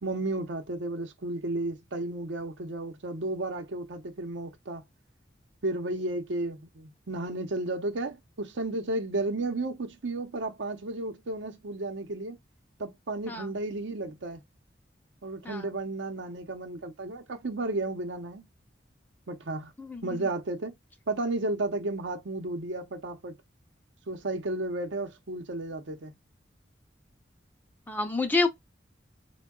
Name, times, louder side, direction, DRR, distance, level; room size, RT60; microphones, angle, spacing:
voice 1, 0.0-4.8 5.6-12.4 12.8-14.4 15.2-18.5 19.3-19.7 20.0-20.7 21.1-23.4 24.1-26.1, right 2 dB, 80° right, 0.7 m, -33 dB
voice 2, 27.9-28.5, left 3 dB, 10° left, 0.5 m, -28 dB
4.4 x 2.2 x 2.2 m
head